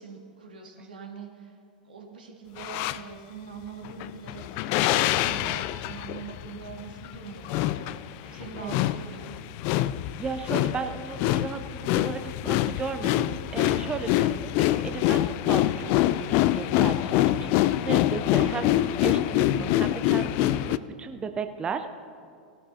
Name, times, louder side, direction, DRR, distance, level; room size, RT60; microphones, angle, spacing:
voice 1, 0.0-1.5 1.8-8.0 8.3-9.5 13.1-13.4 19.4-19.9, right 6 dB, 80° right, 1 dB, 1.9 m, -43 dB
sound 1, 2.6-3.0 3.8-20.8, left 14 dB, 45° left, 0.3 m, -25 dB
voice 2, 8.2-8.8 10.2-16.3 16.5-21.9, right 5 dB, 20° right, 8 dB, 0.6 m, -35 dB
18.0 x 12.5 x 2.8 m, 2.3 s
hypercardioid pair, 95°, 5 cm